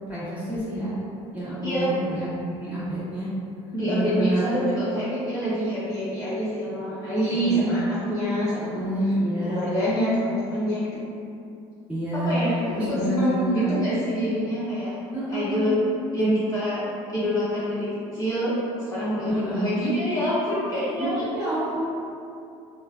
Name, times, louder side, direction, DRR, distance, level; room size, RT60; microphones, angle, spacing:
voice 1, 0.1-0.9 1.3-3.3 3.9-4.5 7.3-7.7 8.6-9.6 11.9-12.4 12.7-13.8 15.1-15.8 16.2-16.3 19.3-19.7 21.0-21.8, right 1 dB, 10° right, -11 dB, 1.3 m, -28 dB
voice 2, 3.7-8.8 9.4-11.0 12.1-14.9 15.3-15.8 16.1-18.6 18.9-21.2, equal, 25° left, -10 dB, 0.7 m, -26 dB
3.1 x 2.3 x 2.3 m, 2.5 s
supercardioid pair, 85°, 15 cm